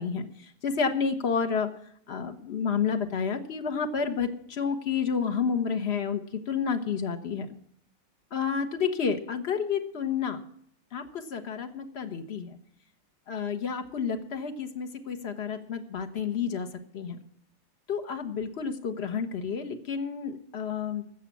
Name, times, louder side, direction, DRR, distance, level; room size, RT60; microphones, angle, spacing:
voice 1, 0.0-1.7 2.1-7.5 8.3-10.4 10.9-12.6 13.3-16.7 16.9-17.2 17.9-21.0, left 6 dB, 45° left, 6 dB, 0.9 m, -30 dB
15.5 x 6.5 x 8.3 m, 0.68 s
omnidirectional pair, 2.4 m